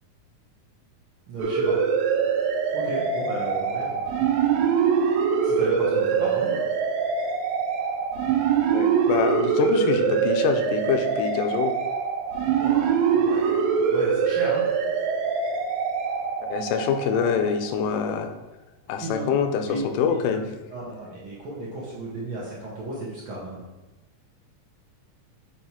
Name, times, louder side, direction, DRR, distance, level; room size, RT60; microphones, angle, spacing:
voice 1, 1.3-1.8 2.7-4.1 5.4-6.6 12.6-14.7 19.0-19.3 19.7-19.8 20.7-23.7, right 1 dB, 55° right, -6 dB, 1.5 m, -34 dB
sound 1, 1.4-17.8, right 6 dB, 80° right, 2.1 m, -24 dB
voice 2, 8.7-11.7 16.4-18.3 18.9-20.5, left 6 dB, 90° left, 6 dB, 2.1 m, -25 dB
6.9 x 3.2 x 4.3 m, 1.1 s
omnidirectional pair, 3.6 m